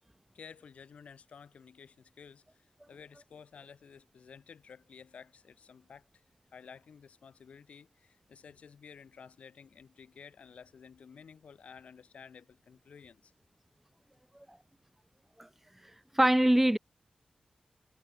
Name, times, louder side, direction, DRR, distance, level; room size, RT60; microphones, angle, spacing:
voice 1, 0.3-6.1 6.5-13.3, left 6 dB, 80° left, 4.4 m, -53 dB
voice 2, 16.1-16.8, right 1 dB, 10° right, 0.5 m, -23 dB
cardioid pair, 45°, 2 cm